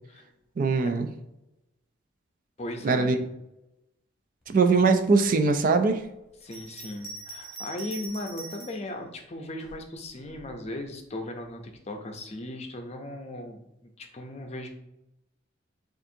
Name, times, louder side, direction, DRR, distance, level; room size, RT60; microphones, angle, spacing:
voice 1, 0.6-1.1 2.8-3.2 4.5-6.0, right 4 dB, 45° right, 7 dB, 0.3 m, -21 dB
voice 2, 2.6-3.3 6.4-13.6 14.0-14.7, left 1 dB, 35° left, 4 dB, 0.5 m, -37 dB
Bell, 6.4-8.9 9.6-10.5, right 2 dB, ahead, 1.1 m, -42 dB
7.0 x 2.5 x 2.6 m, 0.91 s
head